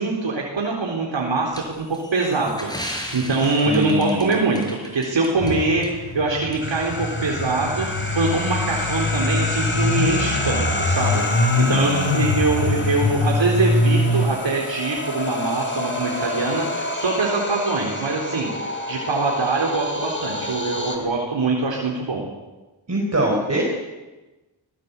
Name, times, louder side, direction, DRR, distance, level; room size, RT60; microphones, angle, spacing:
voice 1, 0.0-5.8 6.1-7.9 8.1-18.5 18.9-22.3, right 3 dB, 75° right, -2 dB, 4.0 m, -23 dB
sound 1, 1.5-5.5 5.8-5.9 6.5-6.6, equal, 10° left, 6.1 m, -35 dB
voice 2, 3.6-4.3 11.7-12.1 21.0-21.1 22.9-23.6, right 1 dB, 35° right, -1 dB, 5.3 m, -24 dB
sound 2, 5.4-14.2, left 3 dB, 75° left, 6.5 m, -23 dB
sound 3, 6.6-21.0, left 1 dB, 25° left, 4.0 m, -29 dB
21.0 x 19.5 x 8.4 m, 1.1 s
wide cardioid pair, 75°, 45 cm